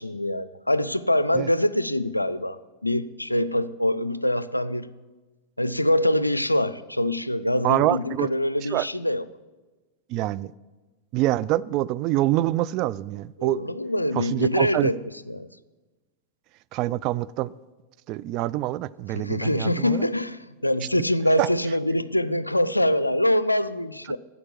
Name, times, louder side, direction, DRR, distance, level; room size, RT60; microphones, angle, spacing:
voice 1, 0.0-4.9 5.6-9.3 13.4-15.0 15.3-15.5 19.1-24.2, left 1 dB, 85° left, 0.4 m, -24 dB
voice 2, 7.6-8.3 8.7-8.9 10.1-10.5 11.1-13.6 14.2-14.9 16.7-17.5 18.1-20.0 21.4-21.5, right 16 dB, 40° right, 0.3 m, -25 dB
11.0 x 8.4 x 7.4 m
figure-of-eight pair, 90°, 0 cm